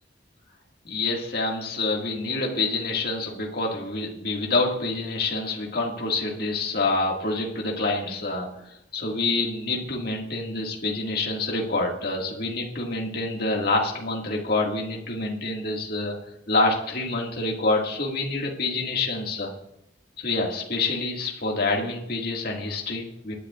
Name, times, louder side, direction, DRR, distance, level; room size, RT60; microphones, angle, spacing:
voice 1, 0.9-16.2 16.5-19.5 20.2-23.3, left 2 dB, 55° left, -1 dB, 2.0 m, -27 dB
25.0 x 10.0 x 2.5 m, 0.79 s
head